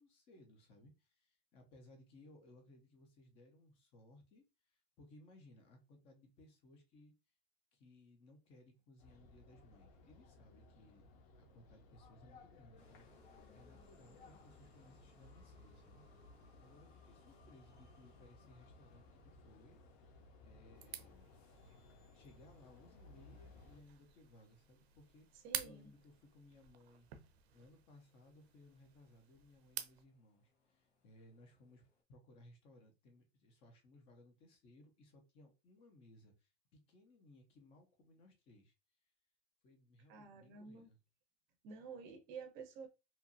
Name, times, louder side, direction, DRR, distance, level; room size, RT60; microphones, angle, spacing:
voice 1, 0.0-7.1 7.7-11.0 11.3-19.8 20.4-21.3 22.1-27.1 27.5-38.7 39.6-41.0, left 1 dB, 20° left, 0.4 m, -63 dB
sound 1, 9.0-23.8, left 3 dB, 60° left, 0.7 m, -61 dB
sound 2, 12.8-32.0, left 3 dB, 80° left, 1.3 m, -72 dB
sound 3, 20.8-30.0, right 11 dB, 80° right, 0.5 m, -51 dB
voice 2, 25.4-25.9 40.1-40.9 41.6-42.9, right 5 dB, 30° right, 0.6 m, -50 dB
2.7 x 2.4 x 2.5 m
supercardioid pair, 170°, 31 cm